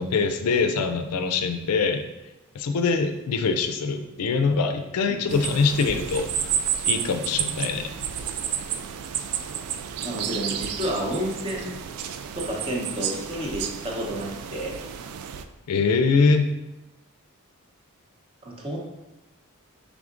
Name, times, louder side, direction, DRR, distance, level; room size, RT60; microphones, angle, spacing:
voice 1, 0.0-2.0 2.5-6.3 6.9-7.9 15.7-16.5, left 4 dB, 85° left, 7 dB, 0.4 m, -23 dB
voice 2, 5.1-5.6 10.0-11.7 12.4-14.8 18.4-18.8, right 1 dB, 25° right, -1 dB, 0.7 m, -30 dB
sound 1, 5.3-15.4, right 8 dB, 80° right, 0.3 m, -31 dB
4.9 x 3.5 x 2.4 m, 1.0 s
head